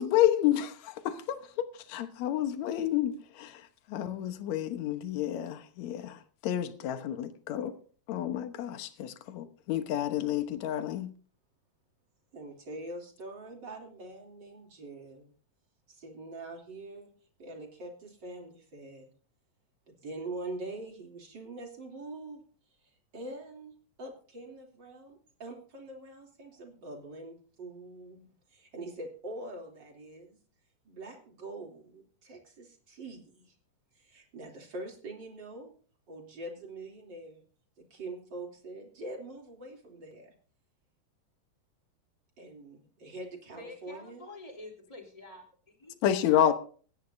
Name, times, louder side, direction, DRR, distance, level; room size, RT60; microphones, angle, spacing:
voice 1, 0.0-7.7 8.1-11.1 46.0-46.5, left 11 dB, 65° left, 2.2 m, -30 dB
voice 2, 12.3-15.3 15.9-17.1 17.4-19.1 19.9-22.4 22.8-23.7 24.0-30.4 30.8-33.5 33.9-35.7 36.1-37.4 37.8-40.3 42.4-44.2, right 2 dB, 35° right, 3.5 m, -44 dB
voice 3, 43.6-46.0, left 2 dB, 10° left, 3.1 m, -48 dB
25.5 x 10.0 x 2.7 m
omnidirectional pair, 3.8 m